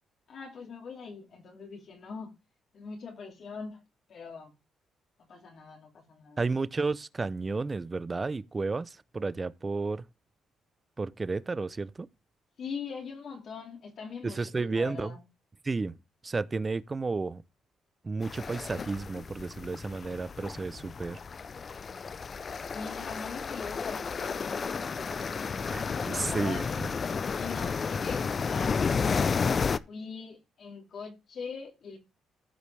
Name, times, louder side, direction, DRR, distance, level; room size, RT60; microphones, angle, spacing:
voice 1, 0.3-2.4 2.7-3.8 4.1-4.5 5.2-6.4 12.6-15.2 22.7-26.6 27.3-28.9 29.9-32.0, left 5 dB, 60° left, 2.7 m, -42 dB
voice 2, 6.4-10.0 11.0-12.1 14.2-15.2 15.6-16.0 16.2-17.4 18.0-21.2 25.7-26.6, right 3 dB, 25° right, 0.6 m, -32 dB
sound 1, 18.2-29.8, left 5 dB, 40° left, 0.5 m, -32 dB
15.0 x 5.1 x 3.4 m
cardioid pair, 90°, 0 cm